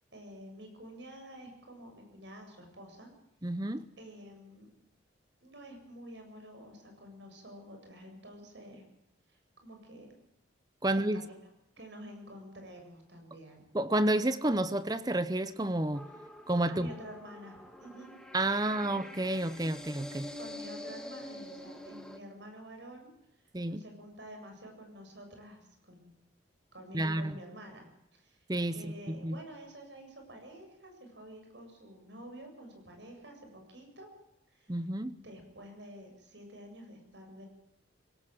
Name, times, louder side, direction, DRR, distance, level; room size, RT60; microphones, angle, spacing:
voice 1, 0.1-3.1 4.0-4.7 5.4-8.8 9.3-10.1 10.8-11.3 11.8-13.7 16.7-18.1 18.6-18.7 20.4-23.1 23.7-26.1 26.7-27.9 28.1-28.4 28.7-34.1 34.5-34.8 35.1-37.5, equal, 70° right, 7.6 m, -49 dB
voice 2, 3.4-3.8 10.8-11.2 13.7-16.1 16.5-16.9 18.3-20.3 23.5-23.8 26.9-27.4 28.5-29.4 34.7-35.2, right 1 dB, 20° right, 0.8 m, -30 dB
sound 1, 15.9-22.2, left 1 dB, 5° left, 1.9 m, -46 dB
22.0 x 18.5 x 7.7 m
head